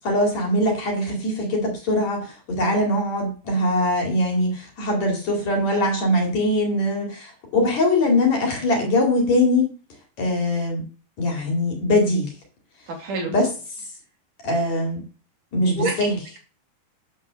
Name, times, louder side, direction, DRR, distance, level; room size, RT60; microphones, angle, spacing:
voice 1, 0.0-9.7 10.2-10.8 11.2-12.3 13.3-13.5 14.4-15.0 15.5-16.2, left 1 dB, 50° left, 0 dB, 3.5 m, -22 dB
voice 2, 12.9-13.4 15.8-16.4, right 3 dB, 60° right, 1 dB, 3.4 m, -29 dB
11.0 x 4.5 x 6.3 m, 0.37 s
omnidirectional pair, 4.3 m